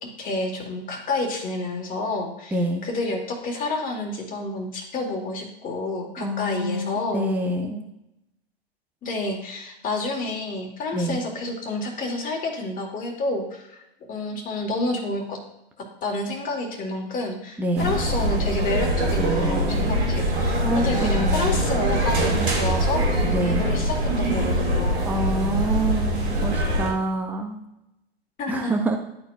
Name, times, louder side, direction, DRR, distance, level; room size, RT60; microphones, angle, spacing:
voice 1, 0.0-2.6 2.8-7.3 9.0-15.4 15.8-23.1 23.4-25.0 28.4-28.7, left 2 dB, 25° left, 1 dB, 1.8 m, -29 dB
voice 2, 2.5-2.9 6.2-7.9 10.9-11.2 17.6-18.0 20.6-21.6 23.3-23.7 25.1-27.6 28.5-29.0, right 1 dB, 5° right, 3 dB, 0.6 m, -26 dB
sound 1, 17.8-26.9, right 1 dB, 80° right, 2.7 m, -23 dB
11.5 x 4.3 x 2.6 m, 0.87 s
hypercardioid pair, 110°, 32 cm